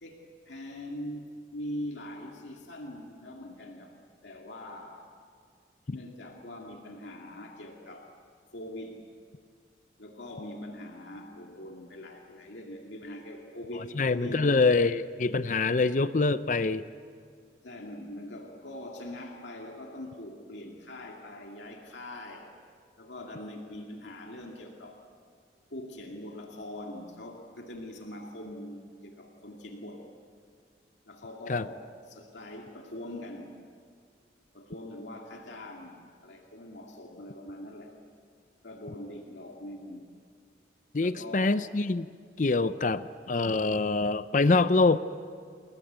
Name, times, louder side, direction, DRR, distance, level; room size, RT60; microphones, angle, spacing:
voice 1, 0.0-4.0 4.2-5.1 5.9-8.1 8.5-9.0 10.0-14.6 17.6-22.5 23.0-25.0 25.7-30.1 31.1-33.5 34.5-38.0 38.6-40.1 41.0-41.6 44.4-44.5, left 1 dB, 75° left, 1 dB, 2.3 m, -42 dB
voice 2, 14.0-16.9 31.5-31.7 40.9-42.1 42.4-45.0, left 3 dB, 45° left, 13 dB, 0.5 m, -25 dB
29.0 x 20.5 x 8.1 m, 2.2 s
head